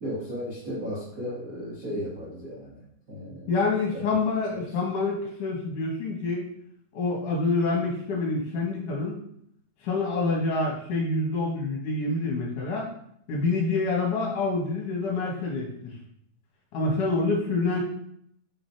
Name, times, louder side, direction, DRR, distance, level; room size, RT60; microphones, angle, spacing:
voice 1, 0.0-2.8 3.1-3.5 3.9-4.0, equal, 40° right, -7 dB, 1.2 m, -35 dB
voice 2, 3.5-6.5 6.9-9.2 9.8-12.9 13.3-15.9 16.7-17.8, left 3 dB, 65° left, -2 dB, 2.9 m, -27 dB
6.6 x 5.2 x 4.8 m, 0.69 s
omnidirectional pair, 4.2 m